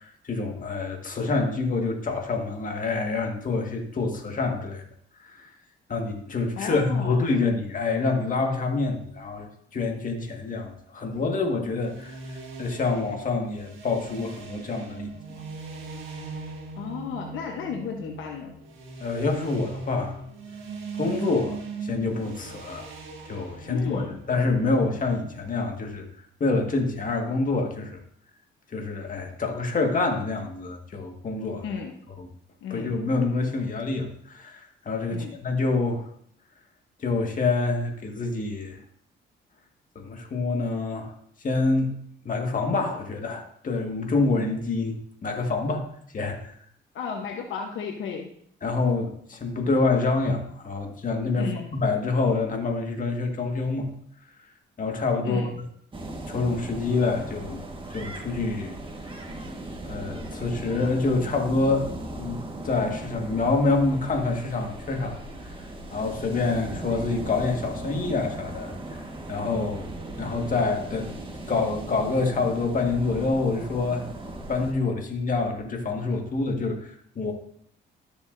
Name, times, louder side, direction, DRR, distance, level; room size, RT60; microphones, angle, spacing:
voice 1, 0.0-4.8 5.2-5.5 5.9-12.2 12.6-15.1 19.0-20.2 21.0-22.9 23.3-24.0 24.3-26.1 26.4-27.9 28.7-31.7 32.2-32.3 32.7-36.0 37.0-38.8 40.0-41.1 41.4-41.9 42.3-45.9 46.1-46.5 48.6-53.9 54.8-55.5 56.3-57.6 57.9-58.7 59.8-61.9 62.2-65.2 65.5-65.6 65.9-68.7 69.3-69.9 70.2-74.0 74.5-77.3, left 3 dB, 40° left, 3 dB, 1.7 m, -27 dB
voice 2, 6.6-7.3 16.7-18.5 23.6-24.2 31.6-32.0 32.6-33.0 35.1-35.4 46.9-48.3 51.4-51.7 55.2-55.5, left 6 dB, 75° left, 3 dB, 1.0 m, -33 dB
sound 1, 11.7-25.4, right 4 dB, 90° right, 1.7 m, -40 dB
sound 2, 55.9-74.7, right 1 dB, 25° right, 1.5 m, -37 dB
12.5 x 6.9 x 2.6 m, 0.65 s
cardioid pair, 90°, 20 cm